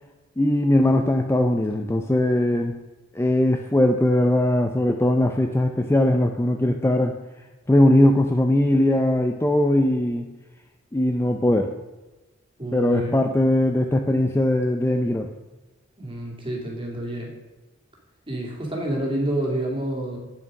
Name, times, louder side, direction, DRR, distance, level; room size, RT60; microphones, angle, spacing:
voice 1, 0.4-2.7 3.1-7.1 7.7-10.3 10.9-11.7 12.7-15.3, left 1 dB, 10° left, 4 dB, 0.4 m, -20 dB
voice 2, 12.6-13.2 16.0-17.3 18.3-20.2, right 1 dB, 25° right, -1 dB, 2.3 m, -28 dB
8.7 x 7.3 x 5.2 m, 1.1 s
head